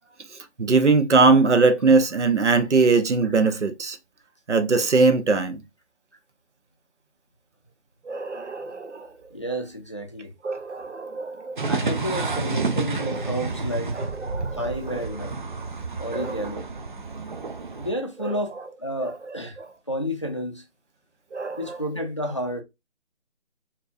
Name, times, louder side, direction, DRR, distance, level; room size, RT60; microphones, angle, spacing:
voice 1, 0.6-4.0 4.5-5.6 8.0-9.1 10.4-11.6 13.9-14.6 16.1-16.4 18.2-18.3 19.0-19.1 21.3-21.8, right 4 dB, 85° right, 0.9 m, -21 dB
voice 2, 9.3-10.3 11.7-13.9 14.5-15.4 16.0-16.6 17.8-19.6 19.9-20.6 21.6-22.6, equal, 25° left, 0.5 m, -30 dB
sound 1, 11.6-17.9, right 3 dB, 45° right, 0.6 m, -30 dB
4.5 x 2.7 x 2.5 m
figure-of-eight pair, 155°, 34 cm